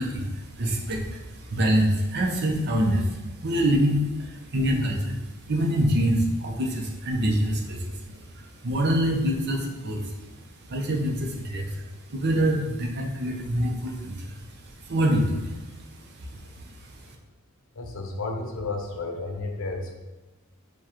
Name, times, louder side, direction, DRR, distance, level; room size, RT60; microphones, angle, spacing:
voice 1, 0.0-5.2 5.5-10.2 10.7-14.4 14.8-17.0, equal, 50° right, 0 dB, 0.7 m, -26 dB
voice 2, 17.7-19.9, left 3 dB, 65° left, 3 dB, 0.6 m, -32 dB
6.7 x 2.3 x 3.0 m, 1.1 s
head